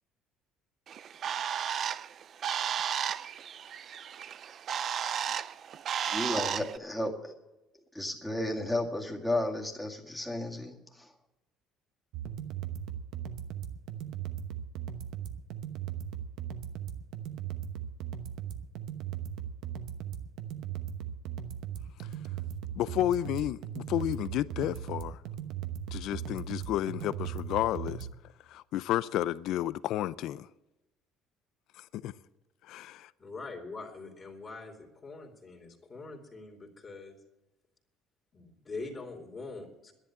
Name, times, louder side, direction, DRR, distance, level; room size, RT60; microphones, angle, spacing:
Bird, 0.9-6.8, right 8 dB, 50° right, 0.4 m, -34 dB
voice 1, 6.1-7.3 7.9-11.1, left 1 dB, 5° left, 2.0 m, -33 dB
sound 1, 12.1-28.1, right 9 dB, 75° right, 1.0 m, -38 dB
voice 2, 22.8-25.2 25.9-28.1 28.5-30.5 31.9-32.1 32.7-33.1, left 13 dB, 70° left, 0.4 m, -31 dB
voice 3, 33.2-37.2 38.3-39.9, left 3 dB, 30° left, 2.8 m, -43 dB
11.0 x 10.5 x 8.7 m
cardioid pair, 115°, 0 cm